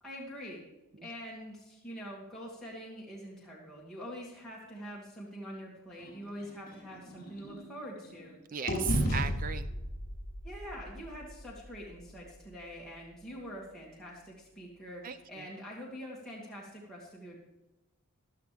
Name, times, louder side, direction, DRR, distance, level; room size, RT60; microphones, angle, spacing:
voice 1, 0.0-0.6 1.0-8.3 10.4-17.4, equal, ahead, -7 dB, 2.3 m, -45 dB
sound 1, 6.0-8.3 8.7-12.6, equal, 40° left, 4.8 m, -36 dB
voice 2, 8.5-9.7 15.0-15.5, right 7 dB, 40° right, 12 dB, 0.5 m, -37 dB
14.5 x 12.0 x 3.5 m, 0.99 s
head